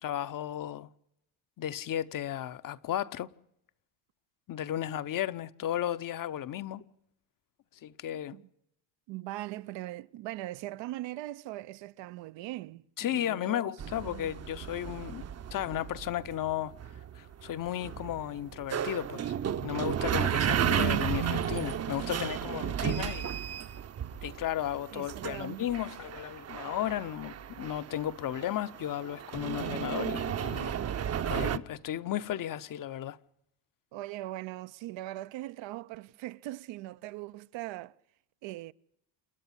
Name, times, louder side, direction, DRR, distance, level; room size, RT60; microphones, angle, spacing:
voice 1, 0.0-0.9 1.6-3.3 4.5-6.8 7.8-8.4 13.0-15.3 15.5-16.7 17.1-19.3 19.6-23.3 24.2-30.8 31.0-33.2, left 11 dB, 45° left, 0.8 m, -34 dB
voice 2, 9.1-13.7 14.0-14.3 24.9-25.7 33.9-38.0 38.4-38.7, right 16 dB, 65° right, 0.8 m, -40 dB
sound 1, 13.8-31.6, right 9 dB, 30° right, 0.8 m, -33 dB
28.5 x 10.5 x 9.9 m
cardioid pair, 125°, 48 cm